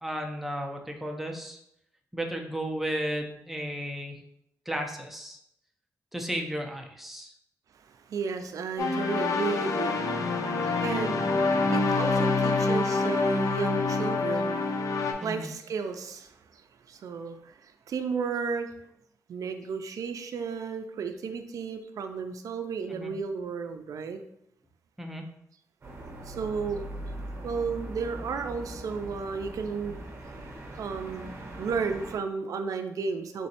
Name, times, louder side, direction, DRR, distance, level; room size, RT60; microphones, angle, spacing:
voice 1, 0.0-1.6 2.1-4.2 4.7-5.4 6.1-7.3 15.2-15.5 22.9-23.1 25.0-25.2, equal, 5° right, 2 dB, 0.4 m, -34 dB
voice 2, 7.7-18.7 19.3-24.2 26.3-26.9 27.4-30.0 30.8-31.3 31.6-33.5, right 5 dB, 65° right, 7 dB, 0.4 m, -34 dB
sound 1, 8.8-15.1, left 3 dB, 60° left, 0.4 m, -26 dB
sound 2, 25.8-32.2, right 1 dB, 45° right, 0.8 m, -41 dB
3.7 x 3.0 x 2.8 m, 0.76 s
wide cardioid pair, 130°, 6 cm